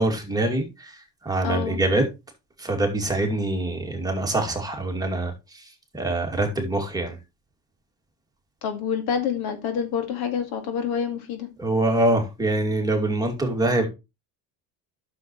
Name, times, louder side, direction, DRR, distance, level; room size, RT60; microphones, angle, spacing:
voice 1, 0.0-2.0 2.6-5.6 5.9-7.2 11.6-13.9, right 1 dB, 10° right, 2.3 m, -24 dB
voice 2, 1.4-1.8 8.6-11.5, left 7 dB, 70° left, 2.2 m, -27 dB
9.7 x 6.9 x 3.1 m
supercardioid pair, 110°, 39 cm